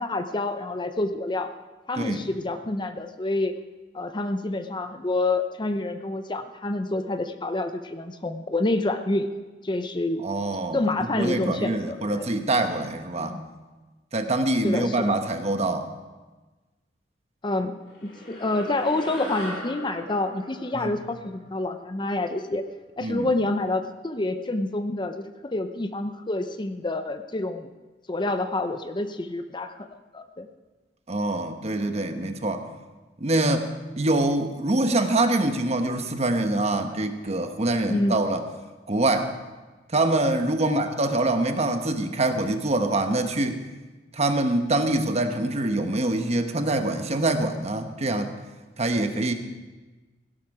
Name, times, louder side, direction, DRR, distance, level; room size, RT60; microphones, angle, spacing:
voice 1, 0.0-1.5 1.9-3.5 3.9-9.3 9.6-10.2 10.7-12.3 13.2-13.4 14.6-15.1 17.4-22.6 23.0-27.7 28.1-29.9 30.1-30.5 37.9-38.2 40.6-40.9, left 2 dB, 25° left, 8 dB, 0.7 m, -28 dB
voice 2, 2.0-2.3 10.2-10.8 11.1-13.4 14.1-15.9 20.7-20.9 23.0-23.3 31.1-32.7 33.2-33.7 34.0-38.4 38.9-39.3 39.9-43.6 44.1-48.3 48.8-49.3, right 2 dB, 35° right, 6 dB, 1.1 m, -25 dB
sound 1, 17.9-22.6, equal, 80° left, 4.9 m, -40 dB
16.5 x 11.5 x 4.9 m, 1.2 s
head